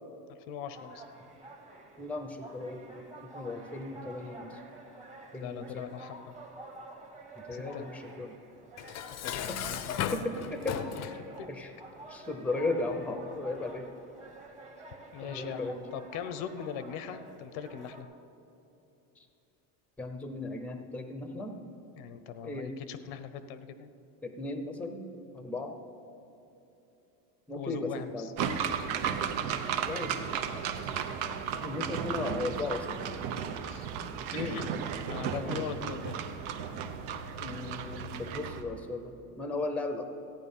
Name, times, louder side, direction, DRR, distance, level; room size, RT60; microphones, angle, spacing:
voice 1, 0.3-1.0 5.4-6.3 7.5-7.9 9.2-10.1 10.9-11.1 11.4-11.5 15.1-18.1 22.0-23.9 27.5-28.3 33.6-33.9 34.3-34.7 35.1-36.2, left 8 dB, 80° left, 11 dB, 0.8 m, -41 dB
sound 1, 0.7-18.0, right 2 dB, 20° right, 1.2 m, -49 dB
voice 2, 2.0-3.1 3.3-4.6 5.3-5.8 7.5-8.3 9.5-9.6 10.1-10.8 11.5-11.7 12.1-13.9 15.2-15.9 20.0-21.5 22.4-22.8 24.2-25.0 25.3-25.7 27.5-28.3 29.8-30.4 31.5-33.0 34.3-34.8 35.4-35.6 37.4-40.0, left 2 dB, 5° left, 6 dB, 0.7 m, -36 dB
Dishes pots and pans, 8.8-11.2, left 9 dB, 40° left, 0.6 m, -35 dB
sound 2, 28.4-38.6, right 7 dB, 75° right, 0.9 m, -34 dB
14.5 x 9.2 x 5.5 m, 2.9 s
cardioid pair, 150°, 39 cm